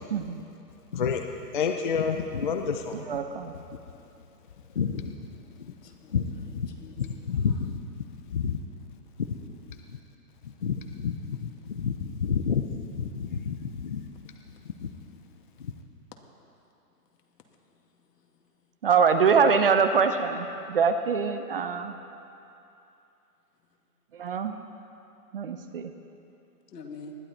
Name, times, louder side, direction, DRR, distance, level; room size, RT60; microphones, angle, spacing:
voice 1, 0.1-0.4 2.9-3.5 18.8-22.0 24.2-24.5 25.3-25.9, right 6 dB, 35° right, 8 dB, 0.6 m, -24 dB
voice 2, 1.5-2.9 4.8-5.0 6.1-6.2 6.5-6.6 7.3-7.8 8.3-8.6 10.6-10.8 11.0-11.2 11.4-11.5 11.8-12.7 13.2-13.6 13.8-14.0, left 6 dB, 35° left, 5 dB, 0.5 m, -27 dB
voice 3, 5.8-7.5 26.7-27.1, left 4 dB, 75° left, 2 dB, 2.3 m, -46 dB
20.0 x 13.0 x 4.4 m, 2.8 s
hypercardioid pair, 160°, 48 cm